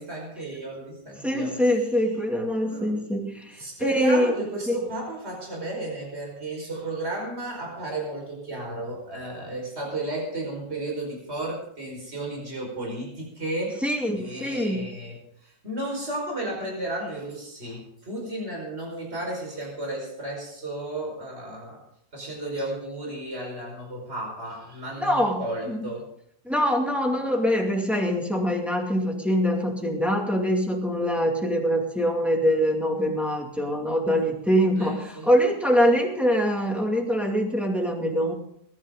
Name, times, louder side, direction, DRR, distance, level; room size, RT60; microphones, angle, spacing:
voice 1, 0.0-1.9 2.6-2.9 3.6-13.8 14.1-21.8 22.1-26.0 34.8-35.3, right 1 dB, 35° right, -1 dB, 5.4 m, -33 dB
voice 2, 1.2-4.3 4.7-4.8 13.8-14.8 25.0-25.8 26.4-38.3, equal, ahead, -1 dB, 2.3 m, -24 dB
21.5 x 11.0 x 3.9 m, 0.72 s
omnidirectional pair, 2.0 m